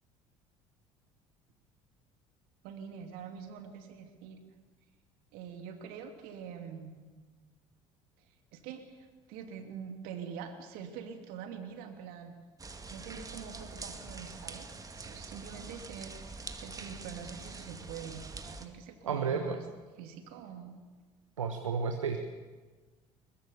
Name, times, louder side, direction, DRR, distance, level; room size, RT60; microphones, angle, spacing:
voice 1, 2.6-4.4 5.3-7.0 8.5-12.4 12.9-19.6 20.0-20.8, right 7 dB, 65° right, 6 dB, 2.8 m, -45 dB
sound 1, 12.6-18.7, right 3 dB, 20° right, 2.2 m, -45 dB
voice 2, 19.1-19.6 21.4-22.2, right 5 dB, 90° right, 5 dB, 1.2 m, -32 dB
22.0 x 21.0 x 7.0 m, 1.4 s
hypercardioid pair, 60°, 16 cm